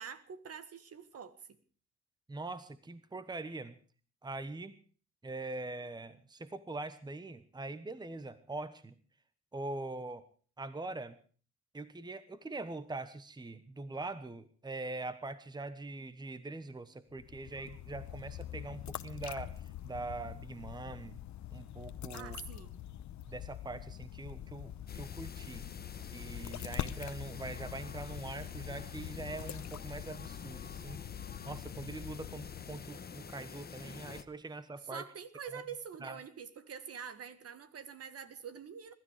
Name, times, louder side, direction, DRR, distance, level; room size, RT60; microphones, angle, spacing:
voice 1, 0.0-1.4 22.1-22.8 34.8-38.9, right 7 dB, 50° right, 13 dB, 1.8 m, -46 dB
voice 2, 2.3-3.8 4.2-4.8 5.2-8.9 9.5-10.2 10.6-11.1 11.7-19.5 19.8-21.2 21.5-22.4 23.3-25.6 26.1-31.0 31.4-35.0 35.5-35.6 36.0-36.2, right 2 dB, 15° right, 13 dB, 1.2 m, -43 dB
sound 1, 17.1-33.0, left 12 dB, 70° left, 1.0 m, -44 dB
sound 2, 24.9-34.2, left 6 dB, 30° left, 1.1 m, -48 dB
21.5 x 13.0 x 4.9 m, 0.41 s
cardioid pair, 90°, 30 cm